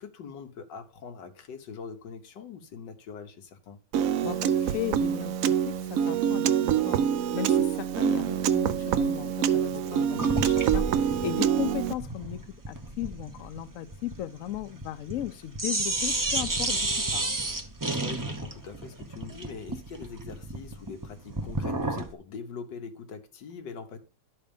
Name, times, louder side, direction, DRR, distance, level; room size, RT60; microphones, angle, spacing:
voice 1, 0.0-3.8 9.7-10.0 17.9-24.0, left 5 dB, 85° left, 1.7 m, -43 dB
Piano, 3.9-11.9, right 9 dB, 70° right, 0.8 m, -26 dB
voice 2, 4.2-12.4 12.7-17.4, left 13 dB, 65° left, 0.8 m, -36 dB
sound 1, 10.2-15.3 15.5-22.1, right 2 dB, 20° right, 0.5 m, -32 dB
11.5 x 4.2 x 5.2 m
omnidirectional pair, 1.9 m